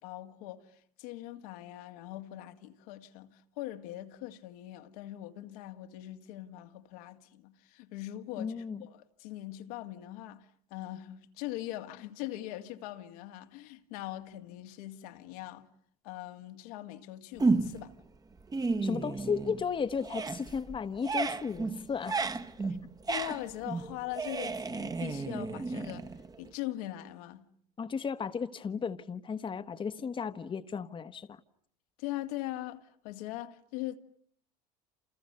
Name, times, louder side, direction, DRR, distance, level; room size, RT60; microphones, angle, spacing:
voice 1, 0.0-15.7 16.0-17.9 22.7-22.8 23.1-26.1 26.4-27.5 32.0-34.0, left 15 dB, 75° left, 2.0 m, -41 dB
voice 2, 8.4-8.8 18.8-22.2 22.6-22.7 27.8-31.4, left 6 dB, 25° left, 1.3 m, -35 dB
sound 1, 17.4-17.9 18.3-19.7 20.0-26.5, right 3 dB, 20° right, 1.4 m, -33 dB
29.5 x 28.5 x 6.8 m
hypercardioid pair, 90°, 19 cm